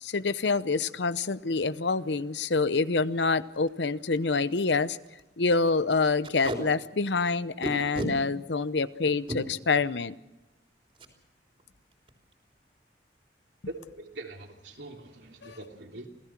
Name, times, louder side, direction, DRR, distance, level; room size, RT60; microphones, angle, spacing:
voice 1, 0.0-5.0 5.4-10.1 15.4-15.6, left 4 dB, 85° left, 15 dB, 0.8 m, -27 dB
Packing tape duct tape, 2.6-2.8 3.2-3.3 3.5-3.7 4.2-4.3 4.5-4.7 5.0-5.2 6.2-6.6 7.6-8.1 9.1-9.4 10.9-11.1 11.5-11.7 11.9-12.3, right 1 dB, 30° right, 3.5 m, -34 dB
voice 2, 13.7-16.1, right 1 dB, 85° right, 2 dB, 3.2 m, -42 dB
27.5 x 17.5 x 6.0 m, 1.0 s
head